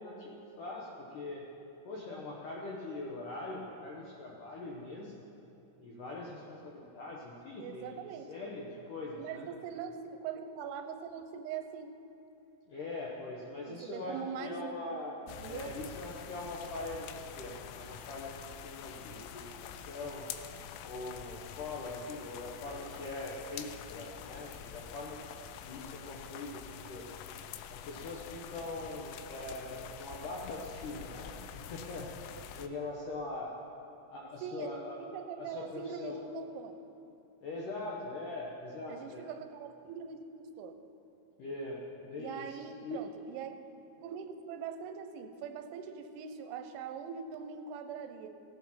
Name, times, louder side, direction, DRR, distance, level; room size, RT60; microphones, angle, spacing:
voice 1, 0.0-1.5 1.9-5.1 5.8-8.0 8.3-9.5 12.7-15.2 15.5-20.3 20.8-25.2 25.6-26.6 26.9-27.1 27.7-33.5 34.1-36.2 37.4-39.2 41.4-43.0, left 2 dB, 75° left, -3 dB, 1.9 m, -42 dB
voice 2, 7.6-8.3 9.2-11.9 13.6-14.8 15.4-15.7 34.4-36.8 38.9-40.8 42.2-43.5 44.0-48.3, right 7 dB, 90° right, 7 dB, 3.2 m, -42 dB
sound 1, 15.3-32.7, left 9 dB, 90° left, 3.0 m, -46 dB
16.5 x 9.1 x 5.8 m, 2.9 s
omnidirectional pair, 5.2 m